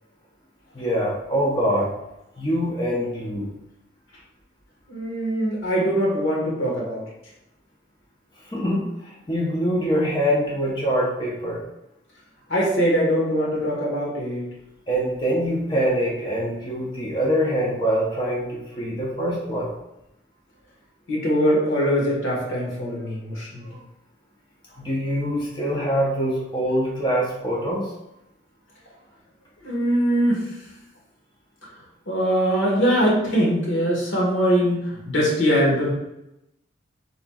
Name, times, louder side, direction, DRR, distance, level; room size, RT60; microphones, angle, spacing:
voice 1, 0.7-1.9 2.4-3.5 8.5-11.6 14.9-19.7 24.8-27.9, equal, 25° left, -4 dB, 0.8 m, -24 dB
voice 2, 4.9-7.0 12.5-14.5 21.1-23.8 29.6-30.5 31.6-31.7 32.1-35.9, equal, 90° left, -4 dB, 1.5 m, -22 dB
4.4 x 4.0 x 2.4 m, 0.86 s
head